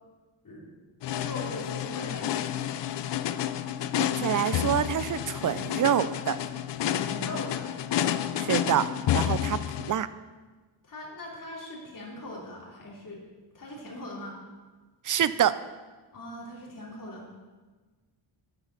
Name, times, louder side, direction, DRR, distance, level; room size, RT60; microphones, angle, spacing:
voice 1, 0.4-0.8 1.2-2.6 6.8-7.8 8.3-8.7 10.8-13.2 13.5-14.4 16.1-17.3, left 1 dB, 40° left, -2 dB, 3.0 m, -40 dB
sound 1, 1.0-9.9, left 11 dB, 60° left, 0.6 m, -30 dB
voice 2, 4.0-6.4 8.4-8.8 9.1-10.1 15.0-15.6, right 10 dB, 40° right, 14 dB, 0.5 m, -26 dB
14.0 x 10.5 x 4.0 m, 1.3 s
wide cardioid pair, 125°, 48 cm